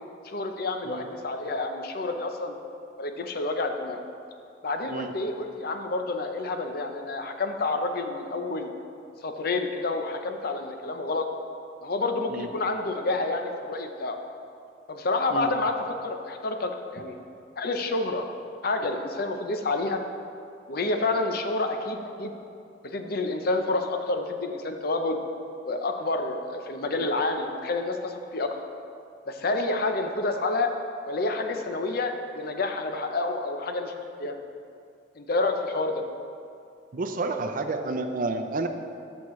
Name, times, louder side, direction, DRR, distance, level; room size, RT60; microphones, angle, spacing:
voice 1, 0.2-2.6 3.0-4.0 4.6-8.7 9.2-11.3 11.8-14.2 14.9-15.7 16.0-17.2 17.6-18.3 18.6-20.0 20.7-22.3 22.8-25.2 25.6-28.6 29.3-30.7 31.1-34.3 35.2-36.0, left 2 dB, 60° left, 5 dB, 0.7 m, -29 dB
voice 2, 36.9-38.7, right 3 dB, 50° right, 7 dB, 0.5 m, -30 dB
13.0 x 6.4 x 3.2 m, 2.5 s
head